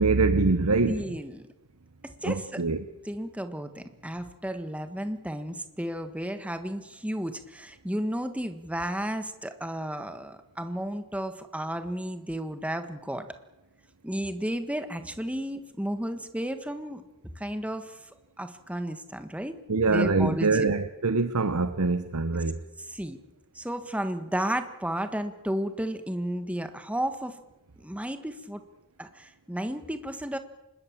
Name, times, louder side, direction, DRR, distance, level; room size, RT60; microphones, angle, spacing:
voice 1, 0.0-1.0 2.2-2.8 19.7-22.6, right 3 dB, 85° right, 1.0 m, -24 dB
voice 2, 0.8-1.4 2.0-2.7 3.1-13.3 14.0-17.0 17.3-18.1 18.4-19.6 19.9-20.7 22.8-23.2 23.5-27.4 27.8-28.6 29.0-30.4, equal, 5° right, 1.4 m, -33 dB
25.5 x 21.0 x 7.4 m
head